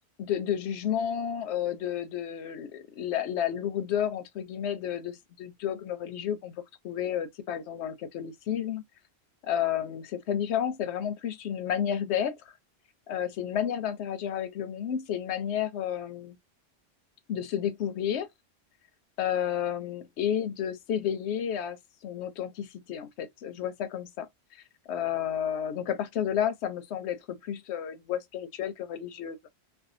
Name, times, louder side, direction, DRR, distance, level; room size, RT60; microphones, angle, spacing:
voice 1, 0.2-6.5 6.8-8.8 9.4-12.6 13.1-16.4 17.3-18.3 19.2-24.6 24.9-29.4, left 9 dB, 90° left, 0.8 m, -31 dB
2.6 x 2.1 x 2.5 m
omnidirectional pair, 1.1 m